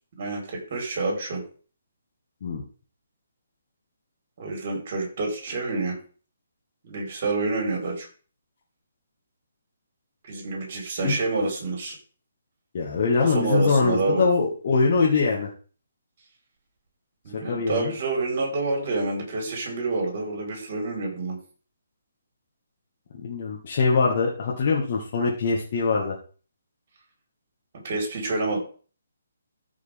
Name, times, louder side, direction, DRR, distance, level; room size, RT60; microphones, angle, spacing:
voice 1, 0.1-1.4 4.4-6.0 6.8-8.1 10.2-12.0 13.2-14.3 17.2-21.4 27.8-28.6, right 3 dB, 45° right, 1 dB, 4.5 m, -28 dB
voice 2, 12.7-15.5 17.3-17.9 23.1-26.2, left 4 dB, 50° left, -4 dB, 1.9 m, -23 dB
14.0 x 4.9 x 3.6 m, 0.40 s
figure-of-eight pair, 145°, 0 cm